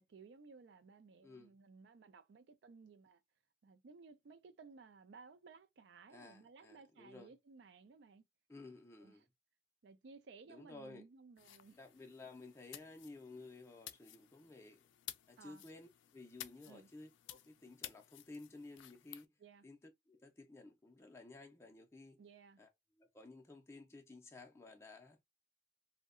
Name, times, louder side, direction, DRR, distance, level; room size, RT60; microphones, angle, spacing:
voice 1, 0.0-3.2 3.6-8.2 9.0-9.1 9.8-11.8 15.4-15.6 16.6-16.9 19.4-19.7 22.2-22.6, right 4 dB, 70° right, 0.4 m, -58 dB
voice 2, 1.2-1.5 6.1-7.3 8.5-9.3 10.5-11.0 11.7-14.9 15.3-19.3 19.6-22.2 22.6-22.7 23.0-25.2, left 3 dB, 15° left, 0.4 m, -55 dB
sound 1, 11.4-19.2, left 13 dB, 85° left, 0.3 m, -54 dB
2.7 x 2.1 x 2.4 m
head